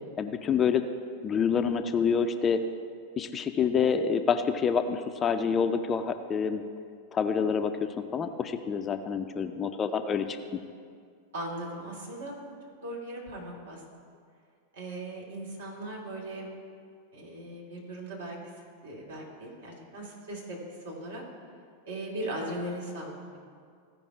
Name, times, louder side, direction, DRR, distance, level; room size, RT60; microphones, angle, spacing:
voice 1, 0.2-0.9 1.2-2.6 3.2-6.6 7.1-10.4, left 6 dB, 25° left, 8 dB, 0.4 m, -27 dB
voice 2, 11.3-12.4 12.8-13.8 14.7-16.5 17.1-18.4 18.8-20.6 20.8-21.2 21.9-23.4, right 1 dB, 65° right, -3 dB, 2.5 m, -38 dB
15.0 x 5.3 x 4.7 m, 2.2 s
figure-of-eight pair, 90°, 0 cm